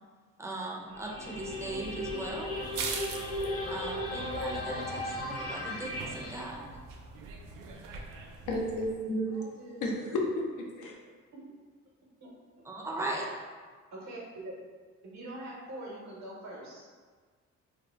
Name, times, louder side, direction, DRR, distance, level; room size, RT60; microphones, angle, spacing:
voice 1, 0.4-2.5 3.7-6.7 12.6-13.2, right 2 dB, 10° right, -1 dB, 0.5 m, -38 dB
sound 1, 0.9-6.4, left 1 dB, 55° left, 0.8 m, -36 dB
sound 2, 1.4-8.9, right 4 dB, 85° right, 0.5 m, -43 dB
voice 2, 8.3-9.4 9.8-11.0, left 1 dB, 85° left, 0 dB, 0.6 m, -32 dB
voice 3, 9.3-9.9 11.3-11.5 12.2-12.3 12.6-12.7 13.9-14.6 15.0-16.9, right 1 dB, 65° right, -3 dB, 0.9 m, -44 dB
2.8 x 2.1 x 3.4 m, 1.5 s
cardioid pair, 90°, 30 cm